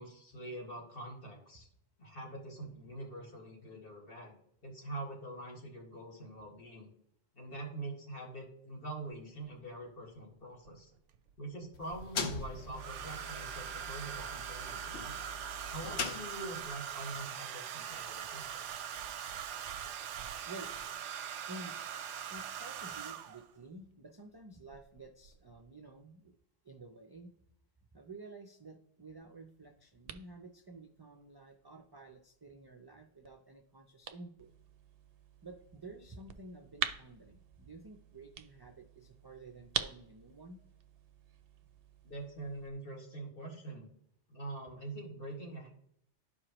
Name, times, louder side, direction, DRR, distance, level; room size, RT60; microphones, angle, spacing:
voice 1, 0.0-1.7 2.0-4.4 4.6-6.9 7.3-10.9 11.4-15.1 15.7-18.6 42.0-43.9 44.3-45.7, right 2 dB, 50° left, -2 dB, 2.1 m, -44 dB
Domestic sounds home sounds, 9.1-9.2 10.6-11.3 12.7-23.5 24.7-25.0 25.2-25.6, right 8 dB, 90° right, 0.9 m, -42 dB
sound 1, 11.7-16.8, left 4 dB, 70° left, 1.1 m, -42 dB
voice 2, 21.5-21.8 22.3-26.4 26.6-27.3 27.9-34.5 35.4-40.6, right 2 dB, 35° right, 4 dB, 0.4 m, -51 dB
sound 2, 29.2-42.7, right 8 dB, 65° right, 0.7 m, -46 dB
12.0 x 4.8 x 3.0 m, 0.68 s
omnidirectional pair, 1.2 m